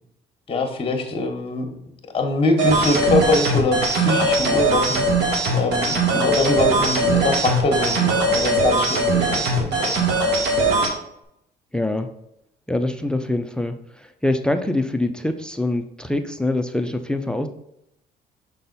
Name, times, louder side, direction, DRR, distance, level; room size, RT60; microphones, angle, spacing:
voice 1, 0.5-1.7 2.1-5.0 5.5-9.9, left 3 dB, 35° left, 4 dB, 1.4 m, -23 dB
sound 1, 2.6-10.9, right 2 dB, 75° right, 1.8 m, -20 dB
voice 2, 11.7-12.1 12.7-17.5, left 1 dB, 5° left, 8 dB, 0.5 m, -24 dB
6.6 x 3.9 x 4.1 m, 0.78 s
cardioid pair, 110°, 17 cm